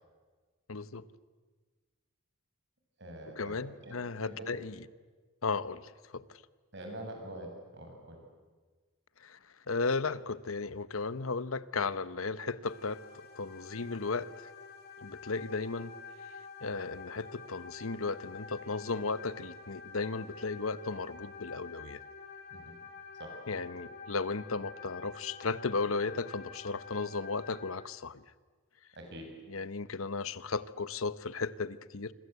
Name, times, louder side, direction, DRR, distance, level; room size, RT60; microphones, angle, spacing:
voice 1, 0.7-1.0 3.4-4.7 5.4-6.2 9.2-9.4 9.7-13.0 13.4-14.5 15.0-15.9 16.6-22.0 23.5-28.2 29.5-32.1, left 4 dB, 80° left, 15 dB, 1.0 m, -35 dB
voice 2, 3.0-4.0 4.2-4.5 6.7-8.2 22.5-22.7 23.2-23.3 28.9-29.3, right 1 dB, 55° right, 3 dB, 7.0 m, -45 dB
sound 1, 12.6-27.7, left 5 dB, 45° left, 3.5 m, -48 dB
26.5 x 26.0 x 8.2 m, 1.4 s
head